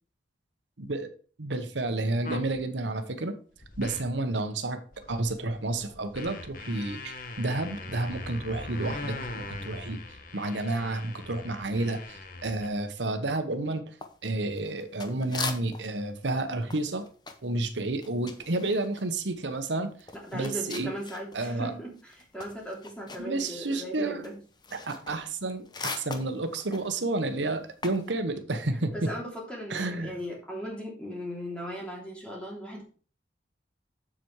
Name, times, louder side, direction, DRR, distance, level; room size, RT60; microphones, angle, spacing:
voice 1, 0.8-1.1 1.4-3.4 3.8-4.8 5.1-10.0 10.3-13.8 14.2-17.1 17.4-19.9 20.3-20.9 21.3-21.7 23.2-24.3 24.7-29.1 29.7-30.1, right 2 dB, 85° right, 7 dB, 1.1 m, -30 dB
sound 1, 2.2-2.6 3.6-4.1 4.6-4.7 4.9-12.7, left 3 dB, 50° left, 1.1 m, -41 dB
sound 2, 14.0-16.0 16.3-21.6 21.9-28.1, left 4 dB, 25° left, 0.9 m, -41 dB
voice 2, 20.2-24.4 28.9-32.8, equal, 5° left, -3 dB, 3.0 m, -38 dB
7.6 x 7.0 x 4.7 m, 0.39 s
head